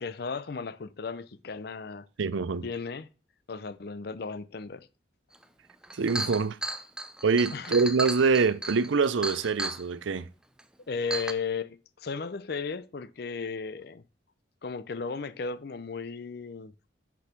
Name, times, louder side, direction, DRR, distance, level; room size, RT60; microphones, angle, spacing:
voice 1, 0.0-2.1 2.6-3.1 3.5-4.9 7.5-7.8 10.9-14.0 14.6-16.7, left 5 dB, 55° left, 0.5 m, -35 dB
voice 2, 2.2-2.6 5.9-6.6 7.2-10.3, right 4 dB, 80° right, 0.5 m, -25 dB
Chink clink, 5.4-5.5 5.8-9.8 10.6-10.7 11.1-11.3, right 2 dB, 5° right, 0.5 m, -34 dB
6.1 x 5.8 x 5.9 m
head